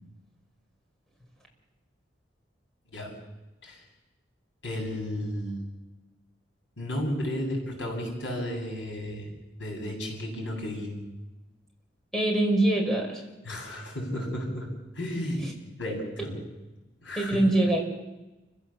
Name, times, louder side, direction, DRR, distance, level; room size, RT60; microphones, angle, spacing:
voice 1, 4.6-5.6 6.8-9.3 9.6-11.0 13.4-14.7 15.0-15.5 15.8-16.4 17.0-17.4, left 1 dB, 85° left, 0 dB, 7.9 m, -33 dB
voice 2, 12.1-13.2 17.2-17.8, right 1 dB, 5° left, 0 dB, 5.6 m, -23 dB
29.5 x 16.0 x 7.3 m, 1.1 s
head